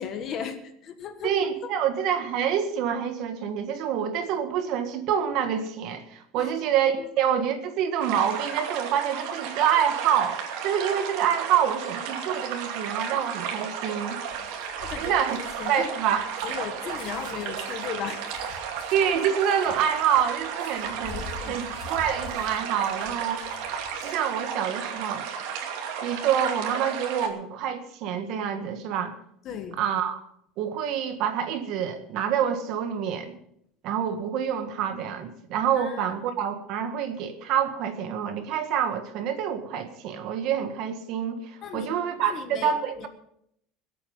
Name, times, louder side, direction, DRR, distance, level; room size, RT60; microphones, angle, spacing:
voice 1, 0.0-1.3 1.6-1.7 6.4-6.5 7.0-7.1 14.8-15.2 15.6-15.9 16.4-18.2 21.1-21.6 29.4-29.8 35.8-36.0 41.6-41.9 42.2-42.7 43.0-43.1, left 7 dB, 35° left, 8 dB, 1.5 m, -36 dB
voice 2, 1.2-14.2 15.0-15.4 15.7-16.3 18.9-23.4 24.0-25.3 26.0-29.2 29.8-30.2 30.6-33.3 33.8-43.1, right 8 dB, 50° right, 8 dB, 1.6 m, -27 dB
sound 1, 8.0-27.3, right 7 dB, 65° right, 2.5 m, -33 dB
sound 2, 14.3-24.4 24.8-25.1, left 4 dB, 70° left, 3.1 m, -46 dB
22.0 x 8.6 x 5.5 m, 0.72 s
cardioid pair, 175°, 0 cm